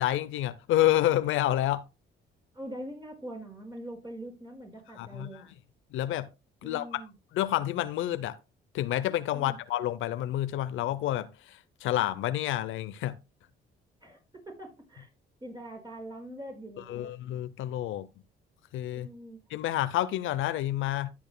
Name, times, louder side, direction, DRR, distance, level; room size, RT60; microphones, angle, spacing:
voice 1, 0.0-1.8 5.0-5.3 5.9-6.3 6.6-7.0 7.3-8.4 8.7-13.2 16.9-18.1 18.7-19.1 19.5-21.1, left 13 dB, 80° left, 0.6 m, -29 dB
voice 2, 2.5-5.5 6.6-7.1 9.3-9.6 14.0-14.2 14.5-15.1 15.4-17.1 18.9-19.4, right 1 dB, 20° right, 5.6 m, -43 dB
12.5 x 8.8 x 2.2 m
cardioid pair, 90°, 20 cm